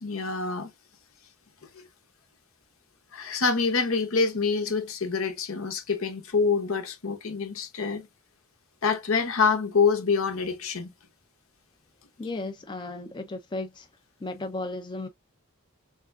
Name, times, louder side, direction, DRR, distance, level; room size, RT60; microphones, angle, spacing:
voice 1, 0.0-0.7 1.7-1.8 3.1-8.1 8.8-10.9, left 5 dB, 75° left, 0.9 m, -26 dB
voice 2, 12.2-13.9 14.2-15.1, left 2 dB, 20° left, 0.4 m, -34 dB
3.5 x 3.3 x 2.4 m
head